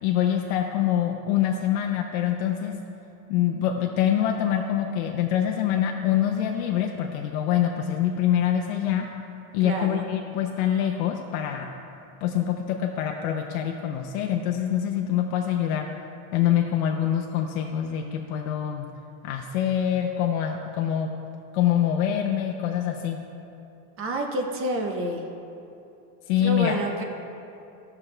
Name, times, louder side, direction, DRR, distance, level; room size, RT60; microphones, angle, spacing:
voice 1, 0.0-2.8 3.3-9.1 9.5-11.7 12.2-15.9 16.3-18.9 19.2-21.1 21.5-23.2 26.3-26.8, left 10 dB, 85° left, 2 dB, 0.7 m, -25 dB
voice 2, 9.6-10.0 24.0-25.3 26.4-27.0, right 2 dB, 30° right, 2 dB, 0.7 m, -28 dB
14.5 x 5.9 x 3.3 m, 2.8 s
cardioid pair, 160°, 41 cm